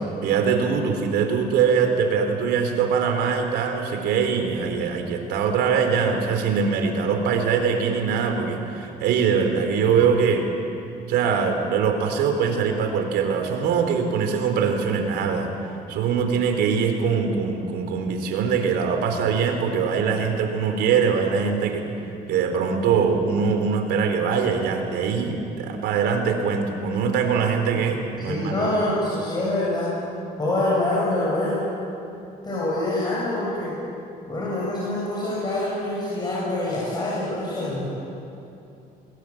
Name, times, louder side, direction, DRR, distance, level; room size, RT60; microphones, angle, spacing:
voice 1, 0.2-10.5 11.1-15.5 15.9-21.9 22.3-28.7, right 6 dB, 85° right, 5 dB, 3.8 m, -22 dB
voice 2, 28.3-29.9 30.4-31.6 32.4-33.8 34.3-37.9, left 1 dB, 25° left, -6 dB, 7.8 m, -25 dB
23.5 x 21.5 x 8.9 m, 2.7 s
cardioid pair, 110°, 17 cm